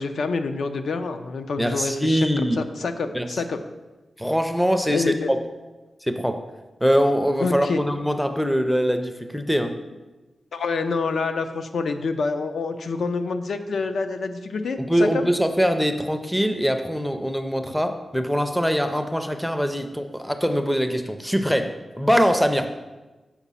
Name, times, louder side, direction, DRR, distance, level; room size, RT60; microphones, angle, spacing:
voice 1, 0.0-3.6 4.9-5.3 7.4-7.9 10.5-15.3, left 4 dB, 80° left, 8 dB, 0.5 m, -27 dB
voice 2, 1.6-2.6 3.1-3.3 4.2-5.4 6.0-6.4 6.8-9.8 14.9-22.7, equal, ahead, 7 dB, 0.4 m, -23 dB
7.1 x 5.0 x 5.5 m, 1.2 s
wide cardioid pair, 175°, 0 cm